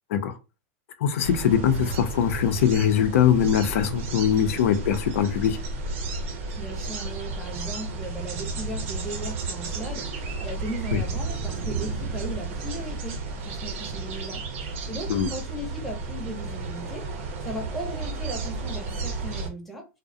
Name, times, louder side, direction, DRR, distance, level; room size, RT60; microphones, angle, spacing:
voice 1, 1.0-5.6 15.1-15.3, left 9 dB, 75° left, 0.5 m, -22 dB
sound 1, 1.2-19.5, right 3 dB, 70° right, 0.8 m, -32 dB
voice 2, 6.6-20.0, equal, ahead, 0.6 m, -37 dB
2.3 x 2.0 x 2.6 m
supercardioid pair, 150°, 7 cm